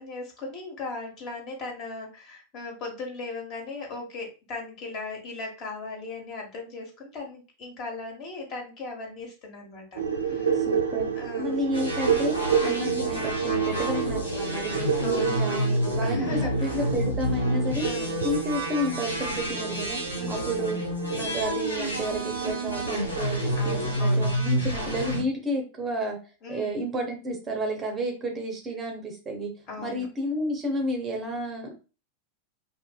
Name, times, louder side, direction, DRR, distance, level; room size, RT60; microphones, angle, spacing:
voice 1, 0.0-10.6 11.2-11.7 12.6-12.8 15.0-16.7 17.8-18.2 20.2-20.5 23.6-24.3 26.4-26.8 29.7-30.1, left 3 dB, 40° left, 0 dB, 1.0 m, -38 dB
sound 1, 10.0-23.9, right 7 dB, 70° right, 0.4 m, -30 dB
voice 2, 10.5-11.1 11.4-16.3 16.6-17.8 18.2-20.0 20.3-20.8 21.1-26.2 26.5-29.5 29.8-31.7, right 1 dB, 20° right, 3 dB, 0.6 m, -31 dB
sound 2, 11.7-25.2, equal, 85° left, 0.7 m, -29 dB
2.6 x 2.4 x 2.2 m, 0.33 s
figure-of-eight pair, 90°, 0 cm